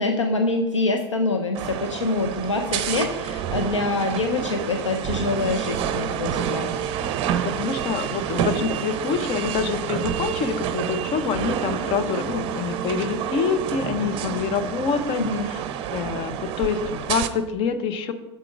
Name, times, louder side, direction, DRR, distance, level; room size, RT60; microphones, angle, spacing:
voice 1, 0.0-6.7 15.2-15.4, left 2 dB, 80° left, 4 dB, 0.8 m, -25 dB
sound 1, 1.5-17.3, right 9 dB, 35° right, 0.7 m, -28 dB
voice 2, 7.6-15.2 15.5-15.6 15.9-18.1, left 6 dB, 35° left, 10 dB, 0.9 m, -26 dB
7.7 x 7.0 x 4.7 m, 1.0 s
figure-of-eight pair, 95°, 15 cm